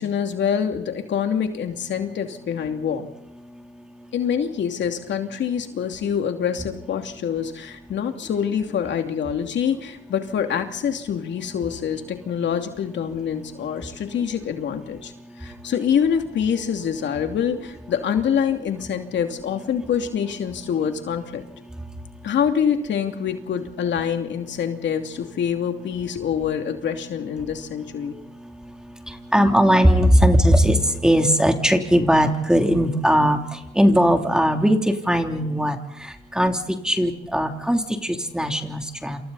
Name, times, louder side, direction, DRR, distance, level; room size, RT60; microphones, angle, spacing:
voice 1, 0.0-3.1 4.1-15.1 15.4-21.4 22.2-28.1, left 8 dB, 65° left, 5 dB, 2.7 m, -25 dB
voice 2, 29.1-36.6 36.8-39.2, equal, 5° right, 4 dB, 3.3 m, -19 dB
28.5 x 27.5 x 4.2 m, 0.87 s
cardioid pair, 90°, 20 cm